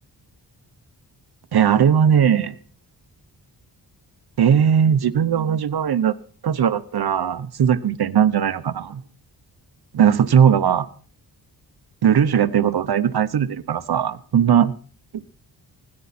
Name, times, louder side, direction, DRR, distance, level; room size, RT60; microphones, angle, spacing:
voice 1, 1.5-2.6 4.4-6.2 6.4-9.0 9.9-10.9 12.0-14.7, right 8 dB, 65° right, 0.9 m, -18 dB
25.0 x 11.0 x 4.2 m
wide cardioid pair, 135°, 41 cm